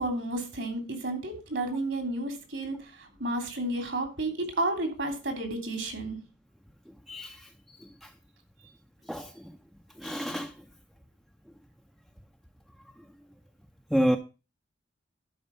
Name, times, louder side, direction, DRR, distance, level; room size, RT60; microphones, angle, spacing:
voice 1, 0.0-6.2, right 2 dB, 70° right, 3.1 m, -32 dB
voice 2, 10.0-10.5 13.9-14.2, equal, ahead, 0.5 m, -27 dB
11.5 x 4.9 x 6.7 m
head